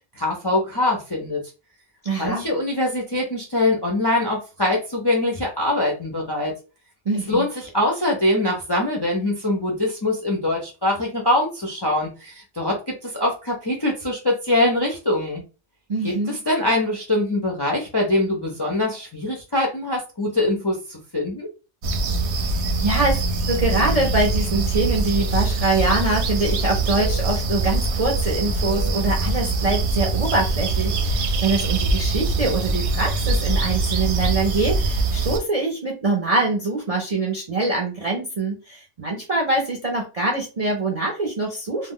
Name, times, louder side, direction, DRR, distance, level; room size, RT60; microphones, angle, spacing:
voice 1, 0.2-1.4 2.2-6.5 7.3-15.4 16.0-21.5, left 1 dB, 35° left, -1 dB, 0.4 m, -23 dB
voice 2, 2.0-2.4 7.1-7.5 15.9-16.4 22.5-41.9, right 2 dB, 50° right, -1 dB, 0.4 m, -24 dB
sound 1, 21.8-35.4, right 2 dB, 65° right, 0.8 m, -23 dB
2.4 x 2.0 x 3.6 m, 0.31 s
omnidirectional pair, 1.4 m